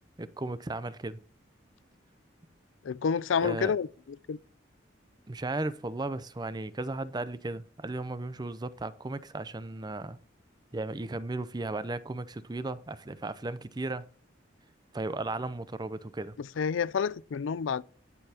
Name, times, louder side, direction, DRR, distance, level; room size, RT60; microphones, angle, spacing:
voice 1, 0.2-1.2 3.4-3.7 5.3-10.2 10.7-14.1 14.9-16.4, right 2 dB, 20° right, 0.5 m, -35 dB
voice 2, 2.8-3.9 4.3-4.4 16.6-17.8, left 6 dB, 85° left, 0.4 m, -28 dB
18.5 x 6.8 x 2.8 m
head